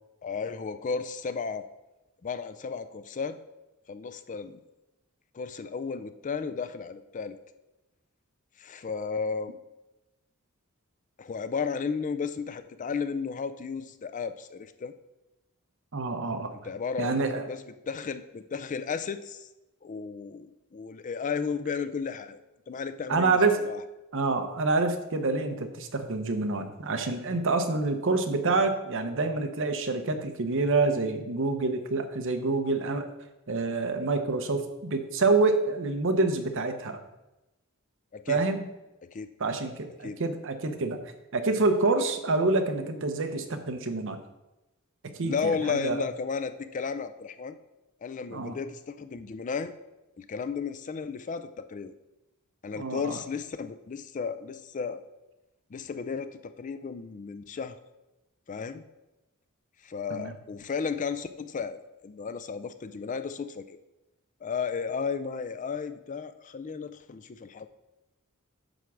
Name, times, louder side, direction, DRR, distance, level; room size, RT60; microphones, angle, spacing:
voice 1, 0.2-1.6 2.2-3.4 3.9-4.6 5.3-7.4 8.6-9.5 11.2-14.9 16.5-17.6 17.9-19.5 19.8-22.4 22.7-23.4 23.7-23.8 38.1-38.4 39.0-39.3 40.0-40.2 45.2-47.6 48.0-49.7 50.2-51.9 52.6-55.1 55.7-57.8 58.5-58.8 59.8-63.8 64.4-67.7, left 5 dB, 35° left, 11 dB, 0.4 m, -34 dB
voice 2, 15.9-16.5 17.0-17.4 23.1-23.6 24.1-33.1 33.5-37.0 38.3-38.6 39.4-41.0 41.3-44.2 45.2-46.0 48.3-48.6 52.8-53.2 60.1-60.3, right 3 dB, 60° right, 7 dB, 0.8 m, -27 dB
9.0 x 3.5 x 6.2 m, 0.99 s
head